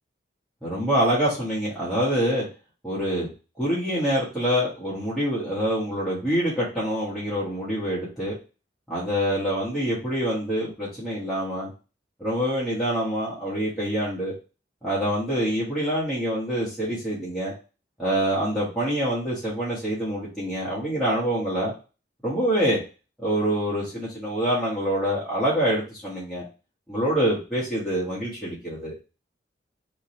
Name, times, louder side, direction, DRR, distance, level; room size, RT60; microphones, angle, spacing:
voice 1, 0.6-2.4 2.8-3.3 3.6-8.3 8.9-11.7 12.2-14.3 14.8-17.5 18.0-21.7 22.2-22.8 23.2-26.4 26.9-28.9, equal, ahead, -10 dB, 1.2 m, -25 dB
3.5 x 2.9 x 4.3 m, 0.32 s
head